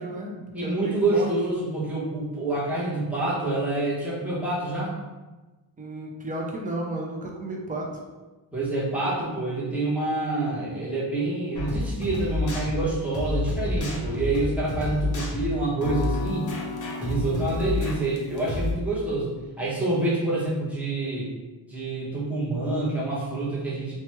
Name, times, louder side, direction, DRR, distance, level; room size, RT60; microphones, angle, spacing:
voice 1, 0.0-1.3 5.8-7.9 17.2-17.6, right 1 dB, 20° right, -1 dB, 0.3 m, -33 dB
voice 2, 0.5-5.0 8.5-16.5 17.0-19.3 19.6-21.3 21.7-23.9, right 2 dB, 5° right, -7 dB, 0.7 m, -27 dB
sound 1, 11.5-18.7, left 2 dB, 40° left, 0.6 m, -29 dB
2.9 x 2.2 x 2.9 m, 1.2 s
wide cardioid pair, 150°, 49 cm